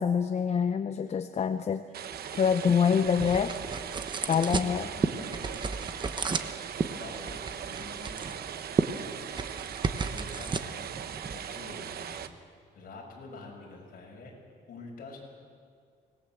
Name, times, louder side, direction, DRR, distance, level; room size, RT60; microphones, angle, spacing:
voice 1, 0.0-1.9 2.3-3.6 4.3-4.9, left 7 dB, 40° left, 10 dB, 0.7 m, -26 dB
sound 1, 1.9-12.3, right 9 dB, 60° right, 1.1 m, -39 dB
sound 2, 2.1-12.3, right 4 dB, 25° right, 1.1 m, -34 dB
voice 2, 4.2-8.5 10.1-11.0 11.3-14.4 14.6-15.2, left 2 dB, 55° left, -1 dB, 6.4 m, -47 dB
24.5 x 20.0 x 7.5 m, 2.2 s
cardioid pair, 145°, 18 cm